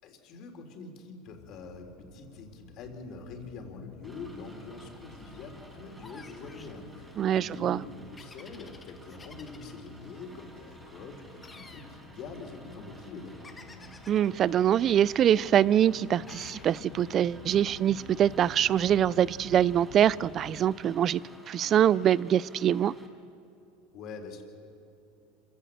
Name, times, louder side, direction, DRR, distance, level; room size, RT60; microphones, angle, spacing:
voice 1, 0.0-13.5 23.9-24.4, left 3 dB, 50° left, 3 dB, 3.7 m, -44 dB
sound 1, 1.3-20.6, left 4 dB, 85° left, 2.4 m, -51 dB
Rain, 4.0-23.1, right 1 dB, 15° right, 5.4 m, -52 dB
sound 2, 6.0-6.8 8.2-9.9 11.4-11.9 13.4-14.3 16.3-16.7, left 4 dB, 15° left, 1.7 m, -51 dB
voice 2, 7.2-7.8 14.1-21.2 21.5-22.9, right 10 dB, 40° right, 22 dB, 0.4 m, -24 dB
26.5 x 16.0 x 7.9 m, 2.6 s
supercardioid pair, 115°, 0 cm